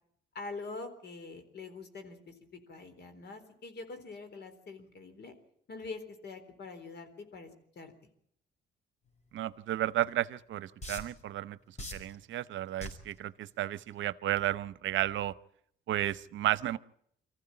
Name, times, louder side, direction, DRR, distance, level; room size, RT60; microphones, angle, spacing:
voice 1, 0.3-5.4 5.7-7.5 7.8-7.9, left 3 dB, 55° left, 8 dB, 4.0 m, -44 dB
voice 2, 9.3-15.3 15.9-16.8, right 13 dB, 75° right, 17 dB, 0.8 m, -33 dB
sound 1, 10.0-10.1 10.8-11.2 11.8-12.1 12.8-13.1 13.8-14.0, left 1 dB, 35° left, 5.2 m, -40 dB
24.5 x 15.0 x 8.9 m, 0.70 s
cardioid pair, 90°, 20 cm